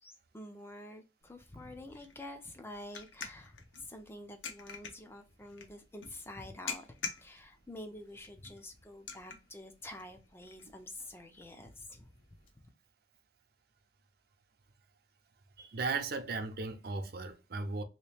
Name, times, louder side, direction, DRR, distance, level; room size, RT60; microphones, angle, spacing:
voice 1, 0.0-12.1 12.5-12.6, left 1 dB, 10° left, 0.4 m, -48 dB
sound 1, 1.2-12.5, left 6 dB, 80° left, 0.8 m, -48 dB
voice 2, 15.6-17.8, right 3 dB, 55° right, 0.5 m, -36 dB
3.0 x 2.9 x 3.3 m
head